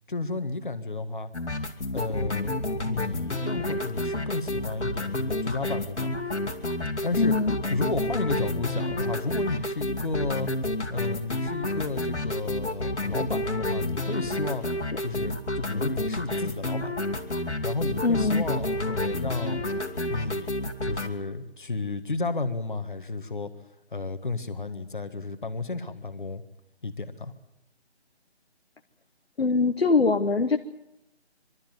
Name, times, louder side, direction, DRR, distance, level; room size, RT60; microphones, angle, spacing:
voice 1, 0.1-1.3 1.9-6.1 7.0-7.3 7.7-10.5 10.9-14.6 15.0-17.0 17.4-19.6 20.1-20.5 20.8-23.5 23.9-26.4 26.8-27.3, left 3 dB, 45° left, 11 dB, 1.5 m, -32 dB
sound 1, 1.3-21.1, left 1 dB, 90° left, 2.4 m, -30 dB
voice 2, 7.2-7.6 18.0-18.5 29.4-30.6, left 4 dB, 65° left, 5 dB, 1.1 m, -23 dB
23.5 x 13.0 x 9.1 m, 0.91 s
figure-of-eight pair, 175°, 33 cm